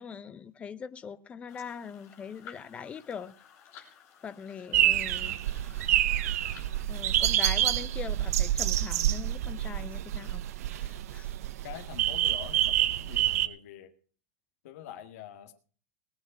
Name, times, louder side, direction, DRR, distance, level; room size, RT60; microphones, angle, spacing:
voice 1, 0.0-3.4 3.8-3.9 4.2-5.3 6.9-10.4 10.7-11.3, left 7 dB, 15° left, 0.6 m, -41 dB
sound 1, 1.5-6.8, left 7 dB, 30° left, 3.3 m, -54 dB
sound 2, 4.7-13.5, right 12 dB, 75° right, 0.9 m, -27 dB
voice 2, 4.9-5.3 11.6-13.9 14.6-15.5, left 11 dB, 70° left, 2.0 m, -46 dB
19.0 x 7.9 x 6.0 m
supercardioid pair, 170°, 8 cm